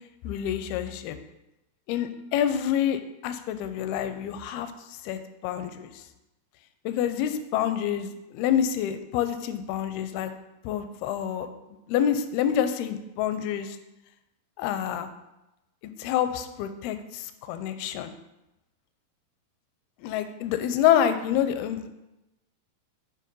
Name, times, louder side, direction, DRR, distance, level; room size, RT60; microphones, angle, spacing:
voice 1, 0.2-1.2 1.9-5.9 6.9-10.3 10.6-11.5 11.9-13.8 14.6-15.1 16.0-18.1 20.0-21.9, left 10 dB, 85° left, 9 dB, 2.4 m, -27 dB
9.2 x 3.9 x 5.4 m, 0.94 s
omnidirectional pair, 4.5 m